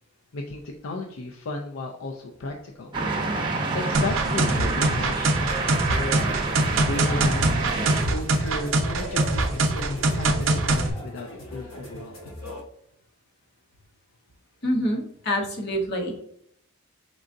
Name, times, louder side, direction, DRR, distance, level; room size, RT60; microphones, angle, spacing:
voice 1, 0.3-2.9 3.7-6.1 6.8-7.4 8.0-12.3, left 2 dB, 70° left, 2 dB, 0.5 m, -34 dB
sound 1, 2.9-8.0, right 3 dB, 25° right, 0.7 m, -28 dB
sound 2, 3.9-10.9, right 2 dB, 70° right, 0.7 m, -23 dB
sound 3, 5.4-12.6, equal, 90° left, 1.0 m, -38 dB
voice 2, 14.6-16.2, equal, 50° left, 1 dB, 1.0 m, -26 dB
4.8 x 3.8 x 2.5 m, 0.72 s
head